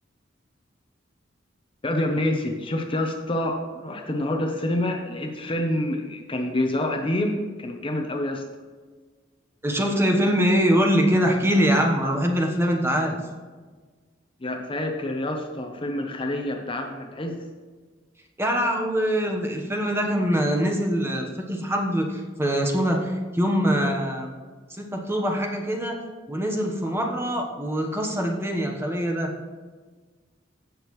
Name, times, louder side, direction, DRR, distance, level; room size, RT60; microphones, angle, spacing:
voice 1, 1.8-8.5 14.4-17.4, left 1 dB, 30° left, 3 dB, 0.9 m, -27 dB
voice 2, 9.6-13.2 18.4-24.3 24.7-29.3, equal, 15° right, 1 dB, 1.2 m, -23 dB
16.0 x 6.4 x 3.2 m, 1.4 s
head